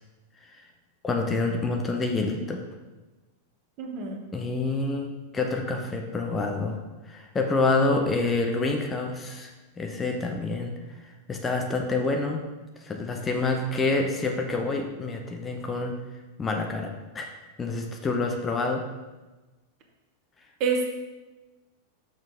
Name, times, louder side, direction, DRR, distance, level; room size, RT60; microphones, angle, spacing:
voice 1, 1.0-2.6 4.3-6.8 7.1-10.7 11.0-12.4 12.8-16.0 16.4-17.3 17.6-18.8, left 3 dB, 20° left, 2 dB, 0.8 m, -27 dB
voice 2, 3.8-4.2 20.6-20.9, right 4 dB, 40° right, 2 dB, 1.1 m, -27 dB
6.3 x 6.2 x 3.5 m, 1.1 s
figure-of-eight pair, 90°, 0 cm